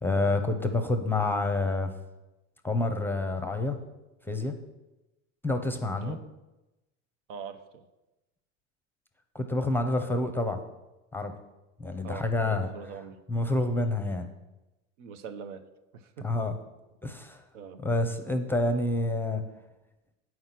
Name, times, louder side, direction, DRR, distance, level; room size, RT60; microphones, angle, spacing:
voice 1, 0.0-1.9 2.6-3.8 4.2-4.5 5.4-6.2 9.3-10.6 11.1-11.3 11.8-12.7 13.3-14.3 16.2-16.5 17.0-17.4 17.8-19.4, left 2 dB, 5° left, 6 dB, 0.7 m, -28 dB
voice 2, 7.3-7.9 12.0-13.2 15.0-15.6 15.9-16.3 17.5-17.8, right 6 dB, 70° right, 9 dB, 0.9 m, -43 dB
7.8 x 4.7 x 5.8 m, 1.0 s
hypercardioid pair, 100°, 38 cm